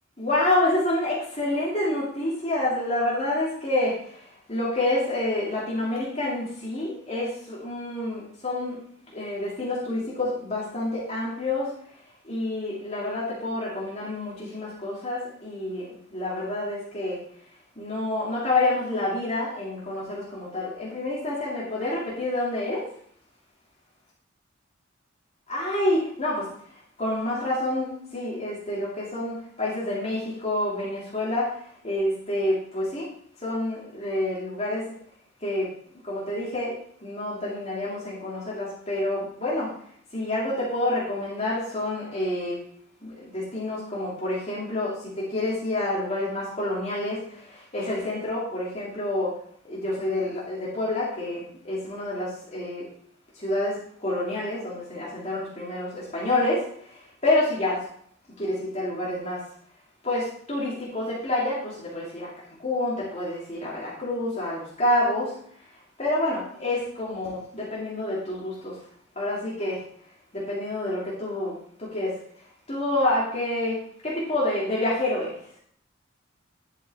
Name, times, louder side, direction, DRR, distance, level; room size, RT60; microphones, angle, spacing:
voice 1, 0.2-8.8 9.1-11.7 12.2-17.2 17.8-22.9 25.5-33.1 33.4-34.9 35.4-35.7 36.0-36.7 37.0-39.7 40.1-42.6 43.0-49.4 49.6-52.8 53.3-57.8 58.4-59.4 60.0-62.3 62.6-65.4 66.0-68.8 69.2-69.9 70.3-72.2 72.7-75.4, left 1 dB, 30° left, -6 dB, 2.5 m, -28 dB
11.0 x 6.2 x 4.2 m, 0.62 s
head